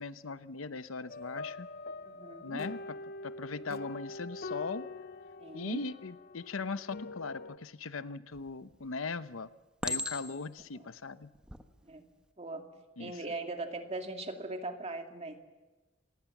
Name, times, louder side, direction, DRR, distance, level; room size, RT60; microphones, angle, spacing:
voice 1, 0.0-1.7 2.4-2.8 3.2-4.9 5.5-9.5 9.8-11.3 13.0-13.2, left 4 dB, 80° left, 13 dB, 0.8 m, -39 dB
sound 1, 1.1-7.6, left 2 dB, 50° left, 0.7 m, -44 dB
voice 2, 2.0-2.6 5.4-5.8 10.7-10.9 11.8-12.1 12.4-12.7 13.0-15.4, right 2 dB, 30° right, 4 dB, 2.2 m, -40 dB
Chink clink, 8.3-8.8 9.8-10.6 11.3-11.6, left 1 dB, 5° right, 1.2 m, -37 dB
26.5 x 20.0 x 7.2 m, 1.2 s
head